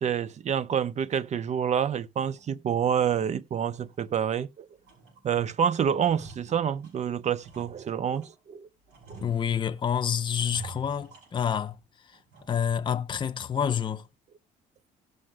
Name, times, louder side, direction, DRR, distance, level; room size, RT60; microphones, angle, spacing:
voice 1, 0.0-4.7 5.2-8.7 9.1-9.2, right 8 dB, 45° right, 0.7 m, -28 dB
sound 1, 2.4-2.5 3.0-3.1 3.5-4.5 4.8-5.5 5.7-8.4 8.9-9.8 10.3-11.8 12.1-12.7 13.1-13.2 13.7-14.1, right 4 dB, 80° right, 6.5 m, -49 dB
voice 2, 9.2-11.8 12.1-12.2 12.5-14.1, left 8 dB, 30° left, 0.7 m, -28 dB
18.0 x 6.3 x 2.2 m
cardioid pair, 110°, 17 cm